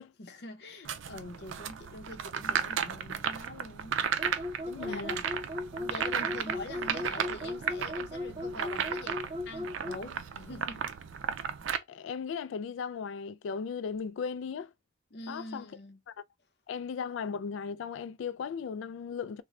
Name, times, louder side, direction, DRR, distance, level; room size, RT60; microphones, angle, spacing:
voice 1, 0.2-4.0 4.6-5.3 5.7-10.9 15.1-16.0, left 2 dB, 55° left, 0.7 m, -44 dB
sound 1, 0.8-11.8, right 7 dB, 85° right, 0.4 m, -34 dB
sound 2, 4.2-10.0, left 2 dB, 25° right, 0.4 m, -37 dB
voice 2, 4.8-5.1 11.9-14.7 15.3-15.7 16.7-19.4, left 6 dB, 80° left, 0.3 m, -36 dB
3.7 x 2.1 x 3.2 m
head